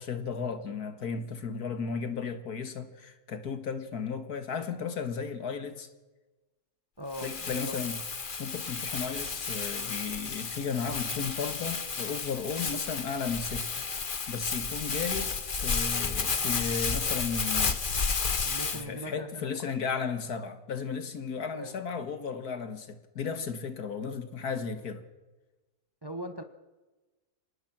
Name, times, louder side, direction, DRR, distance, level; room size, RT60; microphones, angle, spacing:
voice 1, 0.0-5.9 7.2-8.0 8.4-25.0, left 6 dB, 75° left, 2.1 m, -35 dB
voice 2, 7.0-7.8 18.4-19.9 20.3-20.5 21.5-21.8 26.0-26.4, equal, 15° right, 1.2 m, -41 dB
Crumpling crinkling, 7.1-18.8, left 5 dB, 35° left, 1.2 m, -32 dB
26.5 x 19.0 x 6.0 m
omnidirectional pair, 1.7 m